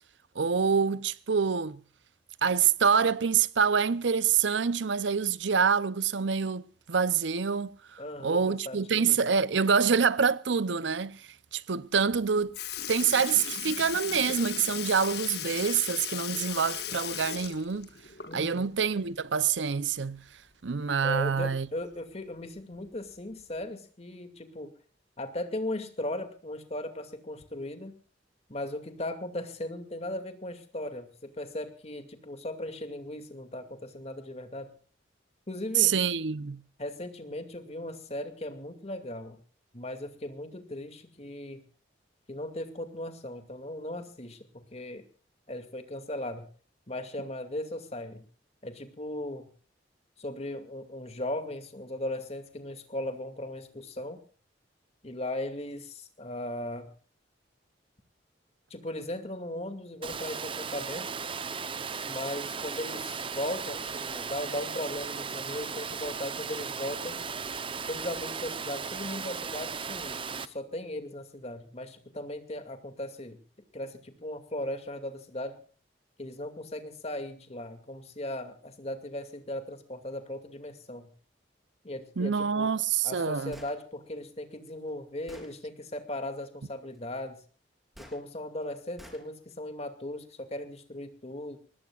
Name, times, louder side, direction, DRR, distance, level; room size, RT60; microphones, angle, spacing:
voice 1, 0.4-1.8 2.4-12.6 12.9-17.9 18.3-20.2 20.6-21.7 35.8-36.6 82.2-83.5, right 6 dB, 80° right, 0.7 m, -26 dB
voice 2, 8.0-9.3 18.2-18.7 21.0-24.7 25.2-27.9 28.5-34.7 35.5-35.9 36.8-39.4 39.7-41.6 42.3-45.0 45.5-46.5 46.9-48.3 48.6-49.5 50.2-54.2 55.0-56.9 58.7-61.1 62.0-67.2 67.9-73.4 73.7-75.6 76.2-81.1 81.8-87.4 88.0-91.6, left 1 dB, 35° left, 2.4 m, -37 dB
Sink (filling or washing) / Liquid, 12.1-12.2 12.5-18.6 19.0-19.1 20.6-20.7 21.7-21.8 22.6-22.8 23.6-23.7, left 10 dB, 60° left, 1.6 m, -37 dB
Water, 60.0-70.5, right 5 dB, 30° right, 0.8 m, -36 dB
Gunshot gunfire, 83.5-83.8 84.7-84.8 85.3-85.5 87.9-88.2 89.0-89.2, equal, ahead, 3.8 m, -49 dB
24.0 x 20.0 x 2.5 m
head